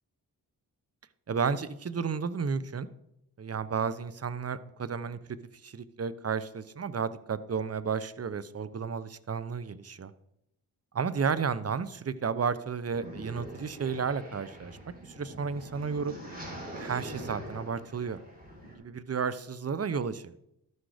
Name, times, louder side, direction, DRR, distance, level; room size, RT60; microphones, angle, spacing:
voice 1, 1.3-2.9 3.4-5.2 5.6-10.1 10.9-16.1 16.7-18.2 18.8-20.4, right 6 dB, 40° right, 15 dB, 0.7 m, -32 dB
sound 1, 12.9-18.7, right 1 dB, 20° right, 4.1 m, -44 dB
12.5 x 6.3 x 4.9 m, 0.79 s
cardioid pair, 55°, 39 cm